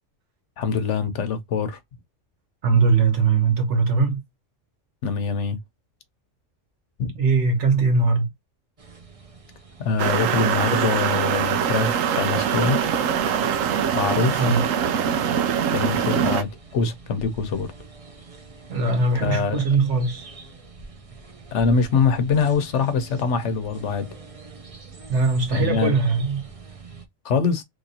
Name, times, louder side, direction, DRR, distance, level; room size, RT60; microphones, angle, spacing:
voice 1, 0.6-1.8 5.0-5.6 7.0-7.1 9.8-12.8 13.9-14.6 15.7-17.7 19.2-19.6 21.5-24.1 25.5-25.9 27.2-27.6, left 5 dB, 70° left, 1.0 m, -24 dB
voice 2, 2.6-4.2 7.1-8.3 12.8-13.1 14.3-14.6 18.7-20.3 25.1-26.4, right 4 dB, 65° right, 1.3 m, -21 dB
sound 1, 8.8-27.1, right 4 dB, 35° right, 0.6 m, -44 dB
sound 2, 10.0-16.4, right 8 dB, 90° right, 1.0 m, -23 dB
3.2 x 2.9 x 2.6 m
omnidirectional pair, 1.3 m